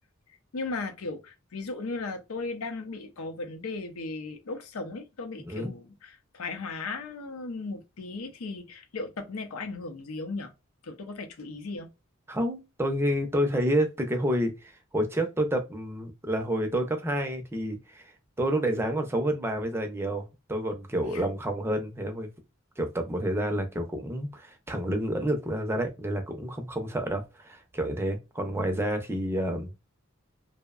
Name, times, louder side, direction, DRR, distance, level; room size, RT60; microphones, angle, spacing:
voice 1, 0.5-10.5 10.8-11.9 21.1-21.2, left 3 dB, 85° left, 0.6 m, -36 dB
voice 2, 12.3-18.1 18.4-22.3 22.8-29.7, right 1 dB, 10° right, 0.4 m, -29 dB
2.6 x 2.1 x 2.3 m
head